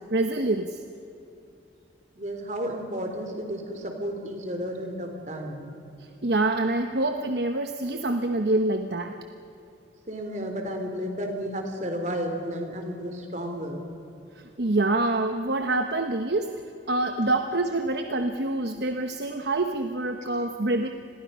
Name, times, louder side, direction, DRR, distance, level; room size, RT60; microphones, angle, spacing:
voice 1, 0.1-0.8 6.0-9.2 14.3-16.6 16.9-20.9, right 2 dB, 60° right, 6 dB, 1.0 m, -26 dB
voice 2, 2.2-5.7 10.1-13.8, equal, 40° right, 4 dB, 3.5 m, -32 dB
30.0 x 21.5 x 5.6 m, 2.8 s
head